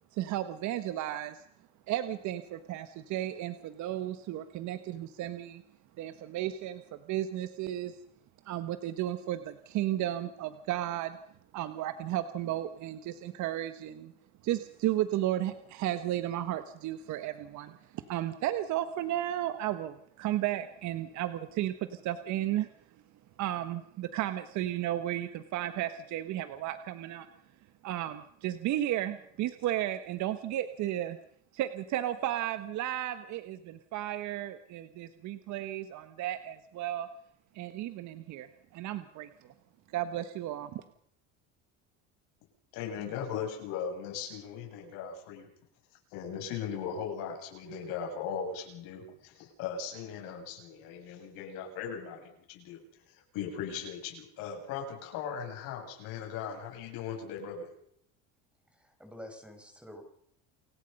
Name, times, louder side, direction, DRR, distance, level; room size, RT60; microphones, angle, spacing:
voice 1, 0.1-1.4 1.9-5.6 6.0-8.0 8.4-11.2 11.5-14.1 14.4-22.7 23.4-27.3 27.8-31.2 31.5-37.1 37.5-38.5 38.7-39.5 39.9-40.8, right 13 dB, 55° right, 10 dB, 1.4 m, -34 dB
voice 2, 42.7-45.5 46.1-52.8 53.1-57.7, left 7 dB, 75° left, 2 dB, 7.8 m, -38 dB
voice 3, 58.7-60.0, left 1 dB, 5° right, 5 dB, 5.4 m, -48 dB
29.5 x 17.0 x 5.5 m, 0.70 s
cardioid pair, 125°, 34 cm